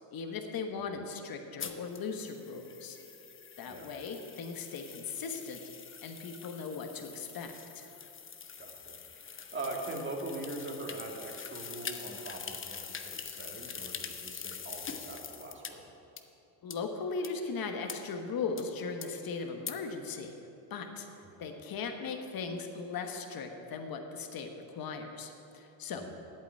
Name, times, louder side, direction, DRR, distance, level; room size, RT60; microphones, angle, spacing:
voice 1, 0.1-3.0 3.6-5.6 6.0-7.9 16.6-20.3 20.7-21.1 21.4-26.0, left 5 dB, 45° left, 4 dB, 1.4 m, -38 dB
sound 1, 1.6-15.7 16.2-16.3 16.7-16.8 17.2-17.3 17.9-18.0 18.6-18.7 19.0-19.1 19.7-19.8, left 6 dB, 25° left, 0.9 m, -44 dB
voice 2, 8.6-15.9 21.4-21.5 25.9-26.1, right 2 dB, 25° right, 0 dB, 2.3 m, -42 dB
8.3 x 8.3 x 9.1 m, 2.9 s
supercardioid pair, 85°, 48 cm